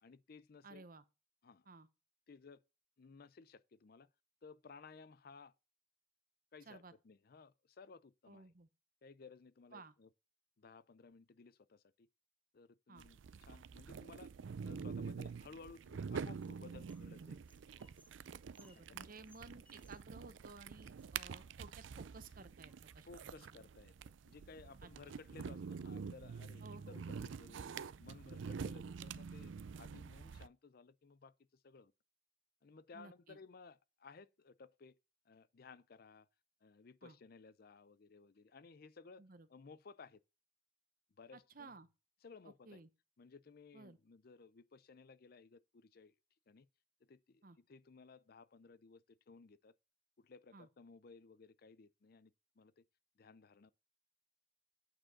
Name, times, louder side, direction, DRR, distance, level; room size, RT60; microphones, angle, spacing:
voice 1, 0.0-0.8 1.4-1.7 2.3-2.6 3.0-4.1 4.4-5.5 6.5-8.5 9.0-10.1 10.6-12.1 12.5-14.3 14.6-17.4 18.9-19.2 23.0-27.6 28.0-31.9 32.6-35.0 35.3-36.3 36.6-39.2 39.5-40.2 41.2-41.7 42.2-42.8 43.2-46.1 46.5-46.7 47.0-49.7 50.2-52.8 53.2-53.7, left 4 dB, 50° left, 0.5 m, -58 dB
voice 2, 0.6-1.0 1.7-1.9 6.7-6.9 8.3-8.7 9.7-9.9 12.9-13.1 18.6-23.4 24.8-25.2 26.6-27.0 28.4-28.5 32.9-33.4 37.0-37.2 39.2-39.5 41.3-41.9 42.7-42.9 43.7-44.0 47.4-47.6 50.5-50.7, right 3 dB, 50° right, 0.9 m, -56 dB
sound 1, 13.0-30.5, right 6 dB, 80° right, 0.4 m, -47 dB
sound 2, 16.0-17.1 17.4-20.2 20.5-20.6 20.8-22.0 22.7-23.3 24.4-24.5 24.8-25.3 25.8-26.0 26.4-26.5 27.0-27.8, left 1 dB, 10° left, 1.0 m, -72 dB
8.8 x 5.0 x 5.8 m
head